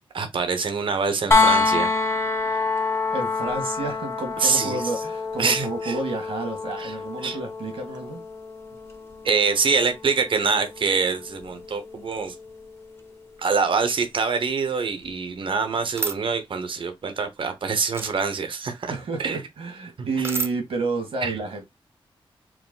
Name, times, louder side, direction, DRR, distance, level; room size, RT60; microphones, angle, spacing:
voice 1, 0.1-1.9 4.4-4.8 5.4-6.0 6.8-6.9 7.2-7.4 9.2-12.3 13.4-18.9 19.2-19.4 20.0-20.3 21.2-21.4, right 5 dB, 60° right, 1.0 m, -25 dB
sound 1, 1.3-13.1 15.0-15.1, left 4 dB, 25° left, 0.9 m, -27 dB
voice 2, 3.1-8.2 18.9-21.7, right 3 dB, 85° right, 2.0 m, -30 dB
sound 2, 16.0-16.2 17.9-18.2 20.2-20.5, right 4 dB, 25° right, 0.7 m, -28 dB
4.7 x 2.2 x 3.9 m
cardioid pair, 80°, 10 cm